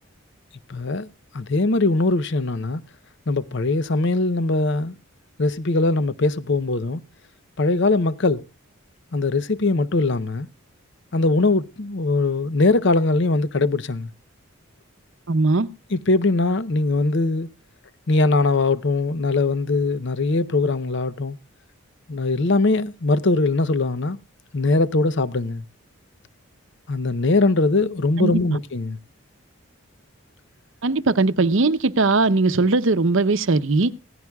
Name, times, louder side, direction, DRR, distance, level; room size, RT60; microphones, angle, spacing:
voice 1, 0.7-1.1 1.3-2.8 3.3-5.0 5.4-7.0 7.6-8.4 9.1-10.5 11.1-14.1 15.9-17.5 18.1-21.4 22.1-24.2 24.5-25.6 26.9-29.0, left 3 dB, 55° left, 0.6 m, -21 dB
voice 2, 15.3-15.7 28.2-28.4 30.8-33.9, right 3 dB, 65° right, 0.7 m, -19 dB
17.0 x 15.0 x 2.3 m
head